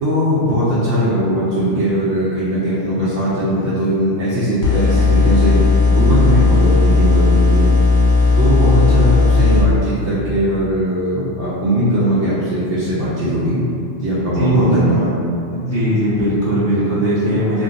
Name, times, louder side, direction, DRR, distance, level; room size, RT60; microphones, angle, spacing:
voice 1, 0.0-5.6 5.9-7.7 8.4-13.6 14.0-15.2, equal, 85° right, -10 dB, 0.9 m, -19 dB
sound 1, 4.6-9.6, left 4 dB, 50° left, 0.7 m, -14 dB
voice 2, 14.4-14.7 15.5-17.6, equal, 25° right, -14 dB, 1.2 m, -18 dB
2.4 x 2.2 x 3.7 m, 2.6 s
omnidirectional pair, 1.2 m